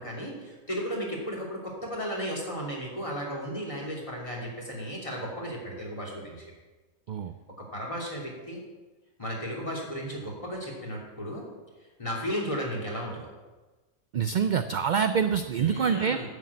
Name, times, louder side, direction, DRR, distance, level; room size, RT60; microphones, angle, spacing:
voice 1, 0.0-6.5 7.6-8.6 9.2-11.5 12.0-13.2 15.5-16.3, equal, 25° left, -3 dB, 3.0 m, -34 dB
voice 2, 14.1-16.2, right 7 dB, 60° right, 9 dB, 0.5 m, -26 dB
10.0 x 6.7 x 8.4 m, 1.2 s
omnidirectional pair, 1.3 m